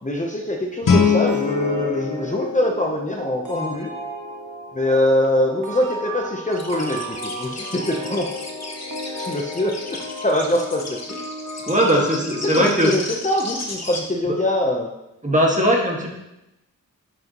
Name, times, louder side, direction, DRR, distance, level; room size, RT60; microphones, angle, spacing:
voice 1, 0.0-3.9 4.7-8.3 9.2-11.2 12.4-14.9, left 1 dB, 25° left, 0 dB, 0.8 m, -23 dB
Guitar, 0.8-3.6, left 5 dB, 80° left, 1.2 m, -23 dB
sound 1, 1.3-13.7, left 1 dB, 65° right, 1.5 m, -34 dB
sound 2, 6.5-14.0, left 2 dB, 50° left, 1.3 m, -34 dB
voice 2, 11.7-12.9 15.2-16.1, equal, 25° right, -2 dB, 1.8 m, -19 dB
10.5 x 6.0 x 3.0 m, 0.92 s
wide cardioid pair, 80°, 32 cm